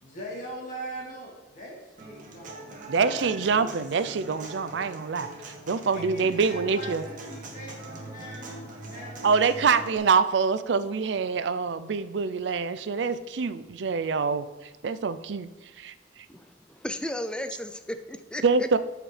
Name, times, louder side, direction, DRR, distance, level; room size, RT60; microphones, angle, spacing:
voice 1, 0.0-3.3 3.6-3.7 5.9-6.9 7.3-9.7, right 1 dB, 45° left, -3 dB, 2.2 m, -41 dB
Human voice / Acoustic guitar, 2.0-10.0, right 2 dB, 50° right, 1.3 m, -42 dB
voice 2, 2.9-7.0 9.2-14.5 14.8-15.5 15.8-15.9 18.4-18.8, right 5 dB, 80° right, 13 dB, 0.5 m, -25 dB
voice 3, 16.3-18.7, left 1 dB, 5° left, 8 dB, 0.4 m, -35 dB
13.0 x 5.0 x 3.3 m, 1.3 s
head